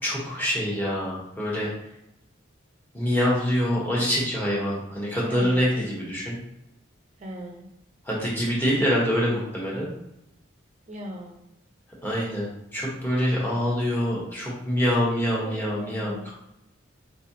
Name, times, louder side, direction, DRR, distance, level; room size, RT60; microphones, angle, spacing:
voice 1, 0.0-1.7 2.9-6.3 8.0-9.9 12.0-12.5 12.7-16.3, equal, 10° left, -6 dB, 1.2 m, -25 dB
voice 2, 5.2-5.9 7.2-7.7 10.9-11.4 15.4-16.3, equal, 35° right, 1 dB, 0.6 m, -39 dB
4.5 x 3.3 x 2.8 m, 0.85 s
head